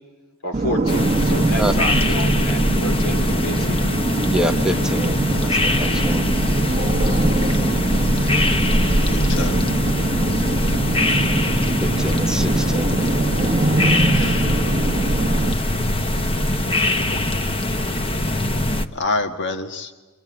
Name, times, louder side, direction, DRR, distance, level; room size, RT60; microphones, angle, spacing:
voice 1, 0.4-3.8, left 1 dB, 80° left, 7 dB, 2.7 m, -30 dB
sound 1, 0.5-15.5, right 2 dB, 30° right, 0.9 m, -23 dB
sound 2, 0.9-18.9, left 1 dB, 25° left, 1.0 m, -22 dB
voice 2, 4.3-6.3 11.2-11.4 11.8-13.0, right 1 dB, 5° right, 5 dB, 0.9 m, -26 dB
voice 3, 9.1-9.6 14.1-14.6 18.9-19.9, left 3 dB, 55° left, 6 dB, 1.5 m, -27 dB
25.5 x 24.0 x 9.6 m, 1.3 s
head